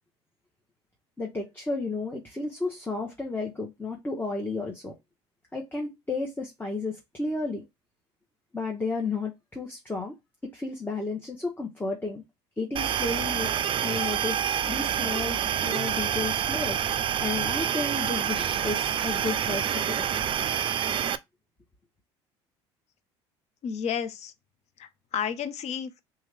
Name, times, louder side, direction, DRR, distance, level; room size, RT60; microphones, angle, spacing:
voice 1, 1.2-4.9 5.5-7.6 8.5-10.1 10.4-12.2 12.6-13.5 13.8-20.1, left 3 dB, 15° left, 1.1 m, -32 dB
sound 1, 12.8-21.2, right 9 dB, 35° right, 0.4 m, -27 dB
voice 2, 23.6-24.3 24.8-26.0, left 8 dB, 50° left, 0.7 m, -32 dB
3.5 x 3.0 x 3.4 m
hypercardioid pair, 65°, 15 cm